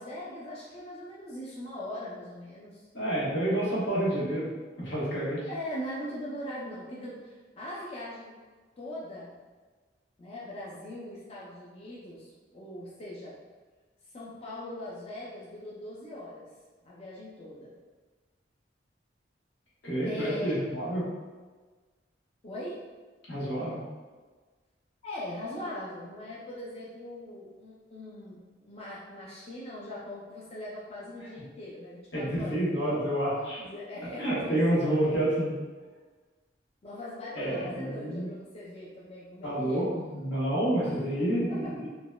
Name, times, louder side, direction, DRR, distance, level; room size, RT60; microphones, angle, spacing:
voice 1, 0.0-2.8 5.5-8.3 8.8-9.4 10.2-13.3 14.1-16.5 16.8-17.8 20.0-20.6 22.4-22.8 25.0-32.6 33.4-35.0 36.8-39.9 40.8-41.0 41.5-41.8, left 1 dB, 35° left, -6 dB, 0.4 m, -40 dB
voice 2, 2.9-4.4 4.8-5.4 19.8-21.0 23.3-23.8 32.1-33.6 34.2-35.5 37.3-38.3 39.4-41.9, right 1 dB, 85° left, -9 dB, 1.3 m, -28 dB
3.8 x 2.2 x 2.2 m, 1.4 s
head